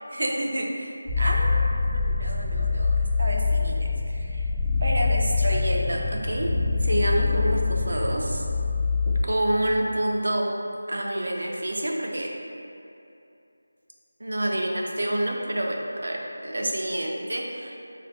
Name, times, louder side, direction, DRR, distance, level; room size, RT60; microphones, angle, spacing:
voice 1, 0.1-4.4 4.8-6.5 6.8-8.4 9.1-10.5 10.9-12.3 14.2-17.7, right 1 dB, 65° right, 0 dB, 0.4 m, -28 dB
sound 1, 1.1-9.2, left 4 dB, ahead, 0.7 m, -25 dB
2.5 x 2.2 x 3.4 m, 2.7 s
figure-of-eight pair, 180°, 0 cm